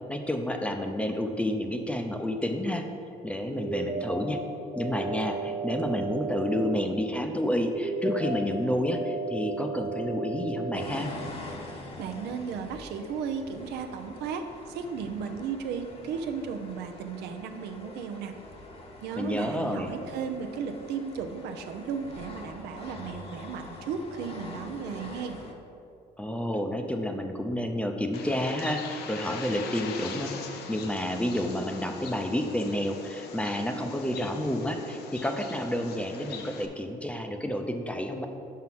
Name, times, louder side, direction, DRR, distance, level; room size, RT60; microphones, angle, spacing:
voice 1, 0.1-2.9 3.2-4.4 4.8-11.1 19.2-19.9 26.2-30.3 30.7-38.3, left 1 dB, 5° left, 4 dB, 0.5 m, -30 dB
sound 1, 3.6-4.2 4.7-6.7 7.7-8.3 8.8-10.8, right 4 dB, 45° right, 1.0 m, -34 dB
sound 2, 10.7-25.5, left 2 dB, 35° left, 0.9 m, -45 dB
voice 2, 12.0-18.3 19.0-25.4, right 6 dB, 80° right, 6 dB, 0.6 m, -35 dB
Bird, 28.1-36.7, left 6 dB, 75° left, 0.6 m, -42 dB
5.7 x 4.8 x 6.0 m, 2.6 s
cardioid pair, 110°, 17 cm